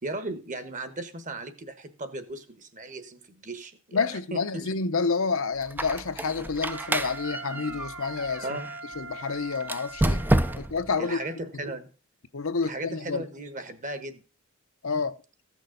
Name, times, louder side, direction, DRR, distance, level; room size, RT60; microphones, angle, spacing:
voice 1, 0.0-4.7 8.4-8.7 10.5-10.7 11.0-11.9 12.6-14.2, right 2 dB, 35° right, 1.3 m, -37 dB
voice 2, 3.9-8.6 9.0-10.2 10.6-11.2 11.5-11.6 12.3-13.2 14.8-15.2, left 4 dB, 70° left, 0.8 m, -29 dB
Squeak, 5.6-8.8 9.6-10.9, right 1 dB, 10° right, 0.4 m, -29 dB
Wind instrument woodwind instrument, 6.6-11.4, right 3 dB, 65° right, 1.5 m, -42 dB
15.0 x 6.2 x 3.9 m
head